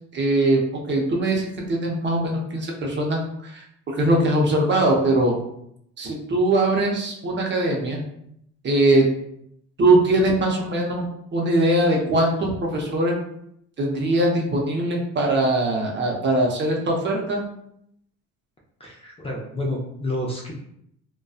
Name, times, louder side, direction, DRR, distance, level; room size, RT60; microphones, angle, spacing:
voice 1, 0.1-0.6 0.9-3.6 3.9-5.3 6.0-8.0 8.6-9.0 9.8-13.1 13.8-17.4, right 1 dB, 40° right, -1 dB, 0.6 m, -21 dB
voice 2, 18.8-20.5, left 1 dB, 20° left, -2 dB, 0.5 m, -29 dB
2.5 x 2.2 x 2.3 m, 0.74 s
cardioid pair, 100°, 30 cm